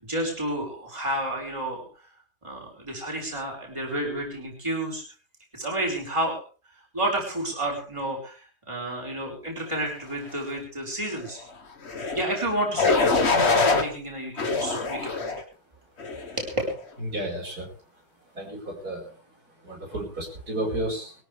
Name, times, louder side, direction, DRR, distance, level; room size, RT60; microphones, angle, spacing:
voice 1, 0.0-1.8 2.4-5.0 5.5-6.4 6.9-11.4 12.1-15.4 16.4-16.5, right 1 dB, 15° right, 0 dB, 5.0 m, -30 dB
sound 1, 11.8-12.2 12.8-13.8 14.4-15.4 16.0-16.4, left 3 dB, 40° left, 1.7 m, -23 dB
voice 2, 17.1-17.7 18.3-19.1 19.6-21.2, right 1 dB, 65° right, -1 dB, 5.6 m, -32 dB
22.0 x 13.5 x 3.5 m, 0.36 s
omnidirectional pair, 1.8 m